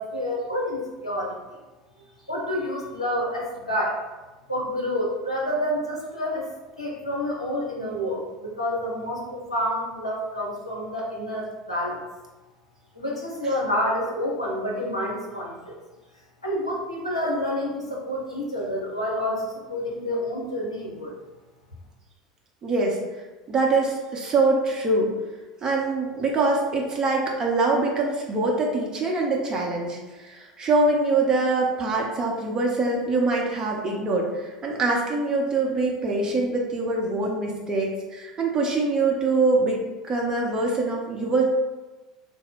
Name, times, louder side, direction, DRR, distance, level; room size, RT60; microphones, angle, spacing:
voice 1, 0.0-1.4 2.3-4.0 4.5-6.5 6.8-12.0 12.9-15.7 16.4-21.1, equal, 85° left, -4 dB, 0.8 m, -28 dB
voice 2, 22.6-23.0 23.5-25.1 25.6-39.8 40.0-41.4, right 3 dB, 25° right, -2 dB, 0.6 m, -24 dB
3.3 x 2.1 x 3.6 m, 1.2 s
figure-of-eight pair, 75°, 3 cm